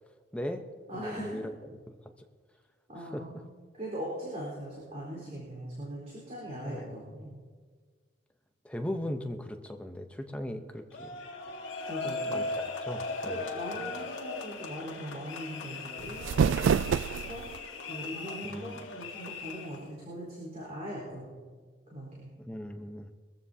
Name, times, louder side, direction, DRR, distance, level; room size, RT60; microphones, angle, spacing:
voice 1, 0.3-0.7 0.9-1.5 1.9-2.0 3.0-3.2 6.7-6.9 8.6-11.1 12.3-12.4 12.9-13.5 18.4-18.9 22.4-23.1, left 1 dB, 5° left, 5 dB, 0.8 m, -38 dB
voice 2, 0.9-1.4 2.9-3.5 3.7-7.4 11.9-12.4 13.2-16.6 17.1-17.5 17.9-21.5 21.9-22.3, equal, 35° right, -5 dB, 4.2 m, -40 dB
sound 1, 10.9-19.9, left 3 dB, 80° left, 1.7 m, -38 dB
sound 2, 16.0-17.6, right 7 dB, 75° right, 0.3 m, -27 dB
23.0 x 14.5 x 2.8 m, 1.6 s
head